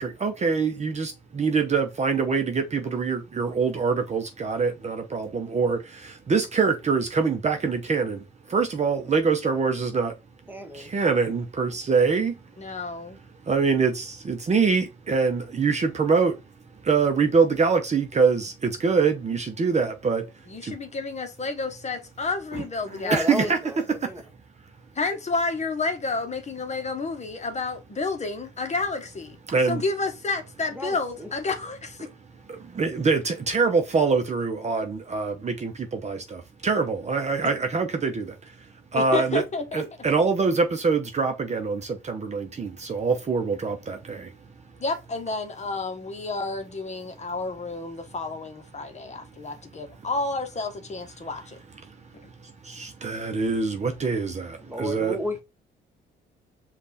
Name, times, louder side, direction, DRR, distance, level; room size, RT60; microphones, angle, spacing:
voice 1, 0.0-8.2 8.5-10.1 10.7-12.3 13.5-16.3 16.8-20.2 20.6-20.7 22.5-23.6 24.0-24.1 29.5-29.8 32.5-38.3 38.9-39.4 39.7-44.3 52.7-55.2, right 5 dB, 35° right, 0.8 m, -24 dB
voice 2, 10.5-10.9 23.0-24.2 30.7-31.3 54.6-55.4, equal, 10° right, 1.3 m, -32 dB
voice 3, 12.6-13.2 20.5-23.5 25.0-29.4 29.7-32.0 38.9-39.8 44.8-51.6, left 3 dB, 35° left, 1.1 m, -30 dB
5.2 x 2.5 x 4.1 m
cardioid pair, 90°, 20 cm